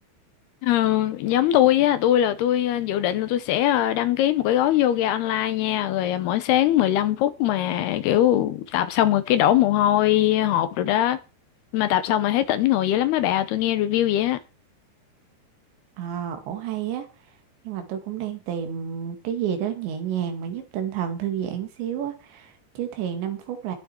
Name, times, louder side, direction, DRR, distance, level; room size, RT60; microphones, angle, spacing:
voice 1, 0.6-11.2 11.7-14.4, left 12 dB, 75° left, 2.7 m, -21 dB
voice 2, 16.0-17.1 17.6-23.8, right 9 dB, 80° right, 4.3 m, -30 dB
21.5 x 7.7 x 4.5 m
omnidirectional pair, 5.1 m